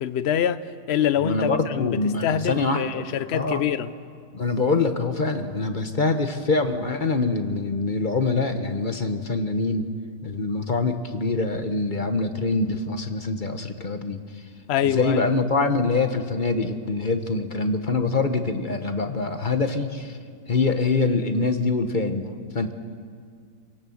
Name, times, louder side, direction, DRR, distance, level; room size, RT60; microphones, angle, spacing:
voice 1, 0.0-3.9 14.7-15.2, left 9 dB, 70° left, 0.6 m, -25 dB
voice 2, 1.2-3.1 3.3-3.6 4.3-9.9 10.2-14.4 14.8-20.2 20.5-22.7, left 3 dB, 35° left, 1.0 m, -24 dB
27.5 x 17.5 x 7.2 m
omnidirectional pair, 1.9 m